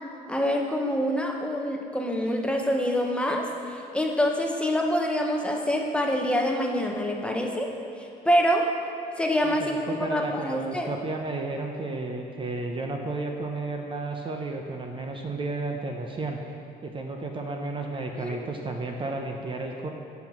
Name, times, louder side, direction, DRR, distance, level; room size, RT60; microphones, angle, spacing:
voice 1, 0.3-7.7 8.0-8.7 9.2-10.9 18.2-18.4, equal, 5° left, 1 dB, 1.0 m, -26 dB
voice 2, 9.5-16.4 16.8-19.9, right 3 dB, 30° right, 3 dB, 0.8 m, -32 dB
9.0 x 5.8 x 6.1 m, 2.7 s
cardioid pair, 110°, 17 cm